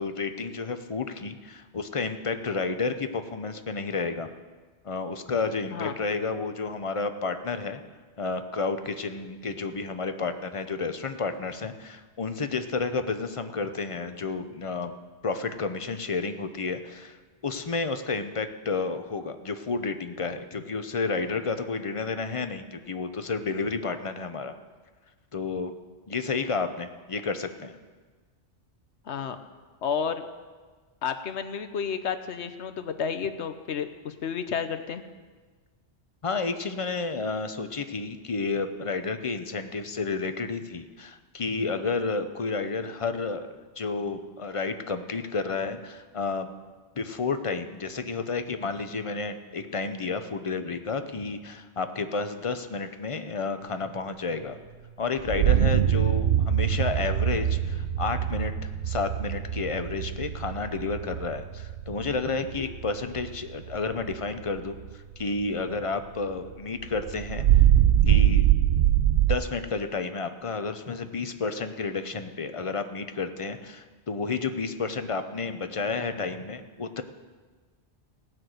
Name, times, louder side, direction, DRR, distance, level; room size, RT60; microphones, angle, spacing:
voice 1, 0.0-4.3 4.8-7.8 8.2-14.9 15.2-17.2 17.4-24.6 25.3-25.7 26.1-27.7 36.2-43.5 43.8-46.5 47.0-54.6 55.0-67.6 68.1-68.5 69.3-77.0, left 4 dB, 35° left, 9 dB, 0.7 m, -31 dB
voice 2, 29.1-29.4 29.8-30.2 31.0-35.0, left 7 dB, 70° left, 9 dB, 1.1 m, -31 dB
sound 1, 55.2-64.2 64.6-64.9 65.2-65.3 65.8-65.9 66.8-69.4, right 11 dB, 60° right, 0.7 m, -23 dB
17.0 x 6.1 x 7.8 m, 1.4 s
omnidirectional pair, 1.2 m